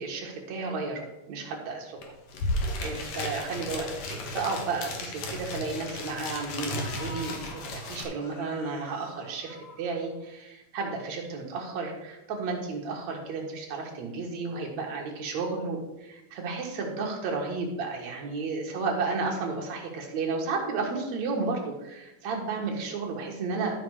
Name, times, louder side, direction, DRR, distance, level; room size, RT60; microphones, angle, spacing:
voice 1, 0.0-2.0 2.8-23.8, right 4 dB, 60° right, 0 dB, 2.8 m, -33 dB
sound 1, 2.0-2.1 2.3-8.0, left 1 dB, 60° left, 2.2 m, -34 dB
sound 2, 6.5-10.4 10.8-10.9, left 2 dB, 80° left, 3.6 m, -47 dB
13.0 x 5.2 x 4.9 m, 0.98 s
omnidirectional pair, 3.9 m